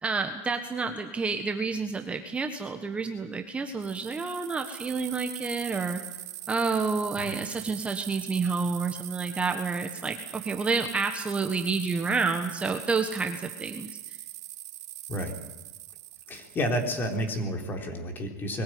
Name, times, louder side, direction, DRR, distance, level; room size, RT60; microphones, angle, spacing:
voice 1, 0.0-6.0 6.5-14.2, right 4 dB, 15° right, 5 dB, 1.3 m, -29 dB
sound 1, 3.8-17.4, right 15 dB, 80° right, 1.6 m, -42 dB
voice 2, 16.3-18.6, equal, 25° left, 3 dB, 3.9 m, -30 dB
22.0 x 16.0 x 9.5 m, 1.2 s
supercardioid pair, 140°, 9 cm